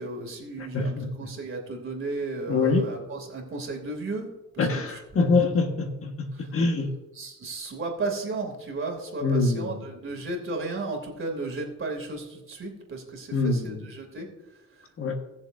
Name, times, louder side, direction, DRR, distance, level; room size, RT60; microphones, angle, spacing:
voice 1, 0.0-4.3 4.5-5.5 6.3-6.5 7.1-14.3 14.7-15.2, right 3 dB, 45° right, 2 dB, 3.0 m, -34 dB
voice 2, 0.6-1.3 2.5-2.9 4.6-6.9 9.2-9.8 13.3-13.9 15.0-15.1, left 3 dB, 50° left, 4 dB, 1.6 m, -25 dB
19.0 x 7.1 x 2.7 m, 0.99 s
cardioid pair, 90°, 30 cm